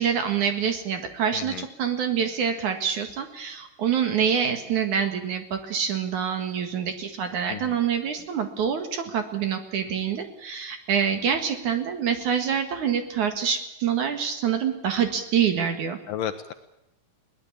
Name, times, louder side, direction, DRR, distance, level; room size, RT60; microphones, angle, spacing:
voice 1, 0.0-16.0, right 7 dB, 55° right, 7 dB, 2.7 m, -26 dB
voice 2, 1.3-1.6 7.5-7.7 16.1-16.5, left 10 dB, 70° left, 9 dB, 2.2 m, -32 dB
21.5 x 18.5 x 8.6 m, 0.88 s
omnidirectional pair, 4.7 m